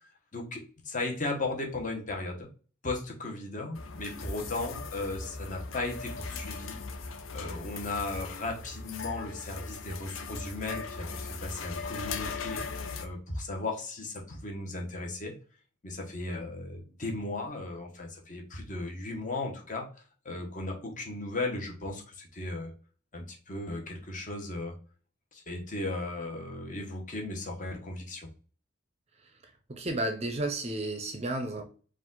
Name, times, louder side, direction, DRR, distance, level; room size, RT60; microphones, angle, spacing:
voice 1, 0.0-2.5 2.8-15.3 15.8-19.9 20.2-22.7 23.1-24.7 25.3-28.3, left 2 dB, 40° left, 1.1 m, -36 dB
sound 1, 3.7-13.1, left 4 dB, 75° left, 0.6 m, -39 dB
voice 2, 29.7-31.6, right 1 dB, 30° right, 0.6 m, -32 dB
4.8 x 2.5 x 3.8 m
head